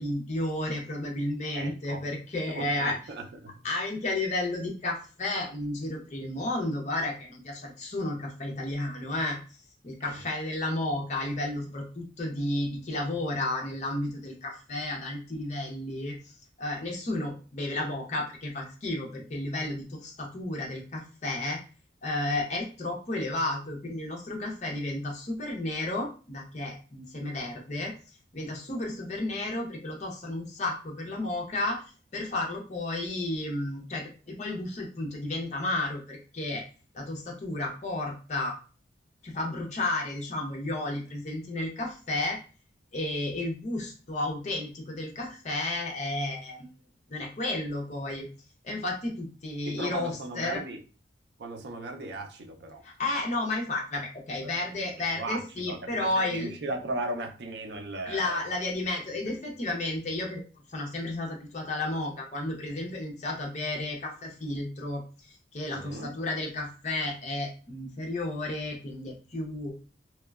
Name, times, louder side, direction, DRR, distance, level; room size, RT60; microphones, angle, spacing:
voice 1, 0.0-2.9 3.6-9.4 9.8-16.2 16.6-21.6 22.0-27.9 28.3-31.8 32.1-36.6 36.9-38.6 39.2-42.4 42.9-46.6 47.1-48.3 48.6-50.6 52.8-56.5 58.1-60.4 60.7-65.0 65.5-69.7, left 2 dB, 40° left, 0 dB, 0.6 m, -32 dB
voice 2, 1.5-2.1 2.5-3.6 10.0-10.2 49.7-50.8 51.4-52.8 54.4-58.5 59.3-59.4 65.7-66.1, right 2 dB, 65° right, 3 dB, 0.5 m, -37 dB
2.9 x 2.1 x 2.3 m, 0.36 s
head